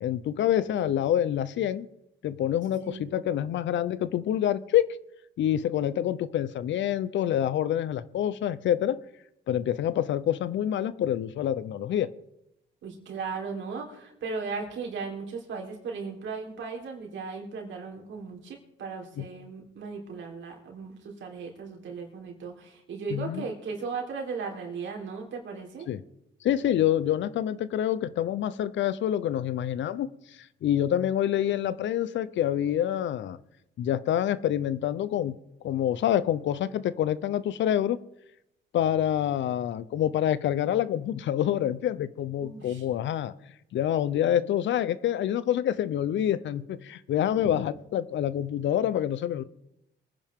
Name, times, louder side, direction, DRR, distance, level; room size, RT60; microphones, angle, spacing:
voice 1, 0.0-1.9 2.2-4.9 5.4-9.0 9.5-12.1 19.2-19.3 23.1-23.5 25.9-26.0 26.4-30.1 30.6-33.4 33.8-35.3 35.6-38.0 38.7-43.3 43.7-49.4, left 11 dB, 70° left, 16 dB, 0.7 m, -27 dB
voice 2, 2.8-3.2 12.8-25.9 42.4-42.8, right 5 dB, 70° right, 1 dB, 3.7 m, -37 dB
24.0 x 10.0 x 3.7 m, 0.83 s
cardioid pair, 90°, 20 cm